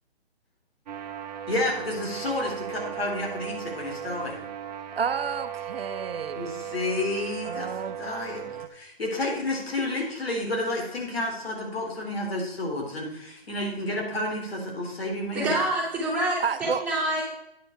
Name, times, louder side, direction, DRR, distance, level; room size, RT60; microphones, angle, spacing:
sound 1, 0.9-8.7, right 9 dB, 45° right, 0.9 m, -37 dB
voice 1, 1.5-4.4 6.3-7.7 8.0-8.4 8.7-15.6, left 2 dB, 70° left, 0 dB, 3.7 m, -30 dB
voice 2, 5.0-6.5 7.4-8.0 8.3-8.7 16.4-16.8, right 6 dB, 65° right, 11 dB, 0.8 m, -31 dB
voice 3, 15.3-17.2, right 1 dB, 5° right, -7 dB, 3.2 m, -26 dB
9.4 x 7.9 x 4.5 m, 0.79 s
figure-of-eight pair, 140°, 31 cm